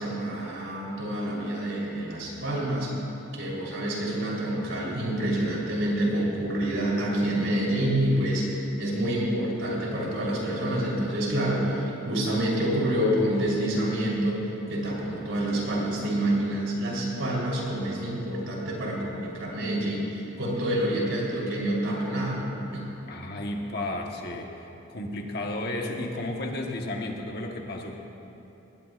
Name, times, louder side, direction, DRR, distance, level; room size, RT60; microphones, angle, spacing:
voice 1, 0.0-2.9 3.3-14.4 14.7-22.4 22.7-22.9, right 1 dB, 70° right, -4 dB, 3.7 m, -27 dB
voice 2, 23.1-24.5 24.9-28.0, left 1 dB, 50° left, 1 dB, 1.2 m, -33 dB
20.0 x 18.0 x 2.5 m, 3.0 s
head